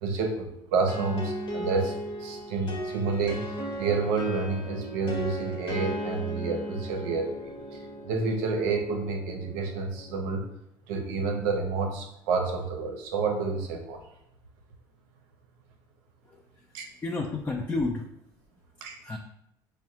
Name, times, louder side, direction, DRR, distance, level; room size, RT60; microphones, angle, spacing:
voice 1, 0.0-1.9 2.2-7.8 8.1-10.4 10.9-14.0 16.7-16.8 18.8-18.9, right 4 dB, 85° right, 4 dB, 0.6 m, -29 dB
sound 1, 0.9-10.5, right 1 dB, 50° left, 1.0 m, -37 dB
voice 2, 16.2-18.1 19.0-19.2, left 3 dB, 20° left, 1 dB, 0.4 m, -32 dB
4.5 x 2.2 x 2.8 m, 0.79 s
supercardioid pair, 90°, 10 cm